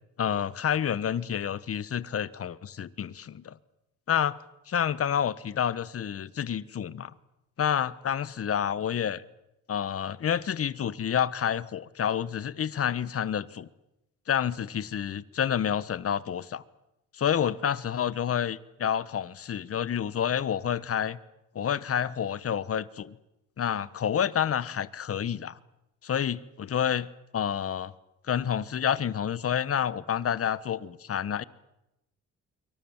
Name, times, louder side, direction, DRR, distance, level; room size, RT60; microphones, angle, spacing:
voice 1, 0.2-3.5 4.1-4.4 4.7-7.1 7.6-9.2 9.7-13.7 14.3-16.6 17.1-21.2 21.5-23.2 23.6-25.6 26.0-27.9 28.3-31.4, left 9 dB, 50° left, 1.3 m, -29 dB
26.5 x 24.0 x 7.3 m
cardioid pair, 90°, 30 cm